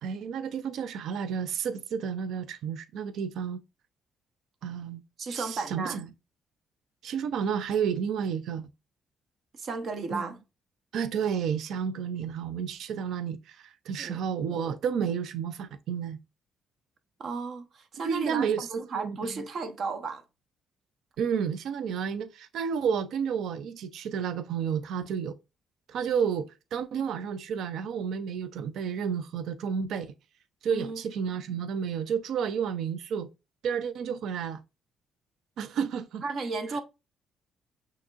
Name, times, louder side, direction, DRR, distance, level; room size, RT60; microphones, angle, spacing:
voice 1, 0.0-3.6 4.6-5.0 5.3-6.1 7.0-8.7 10.1-10.2 10.9-16.2 18.0-18.7 19.0-19.2 21.2-25.4 25.9-30.1 30.6-33.3 33.6-34.6 35.6-36.2 36.7-36.8, right 7 dB, 75° right, 0.4 m, -31 dB
voice 2, 5.2-6.0 9.5-10.4 14.0-14.2 17.2-20.2 30.7-31.0 36.2-36.8, right 4 dB, 60° right, 0.9 m, -34 dB
6.0 x 2.9 x 2.4 m
cardioid pair, 90°, 0 cm